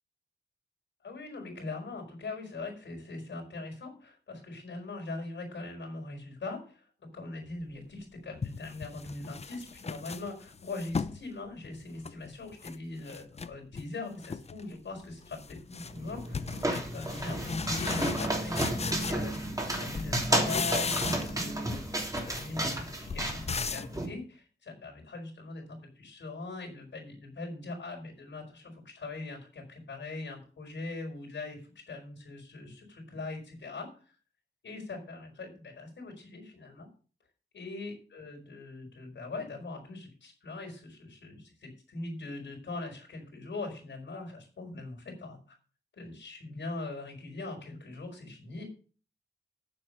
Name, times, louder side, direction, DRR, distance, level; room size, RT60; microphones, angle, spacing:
voice 1, 1.0-6.8 7.1-31.6 31.9-33.9 34.6-36.9 37.5-45.6 45.9-48.6, left 3 dB, 80° left, 1 dB, 4.8 m, -41 dB
sound 1, 7.8-7.9 8.4-11.2 11.6-12.8 13.1-13.9 14.2-14.7 15.0-19.7 19.9-21.5 21.7-24.0, left 5 dB, 35° left, 0.5 m, -37 dB
sound 2, 15.9-24.1, right 1 dB, 20° right, 3.0 m, -32 dB
9.4 x 7.7 x 5.5 m, 0.38 s
wide cardioid pair, 110°, 19 cm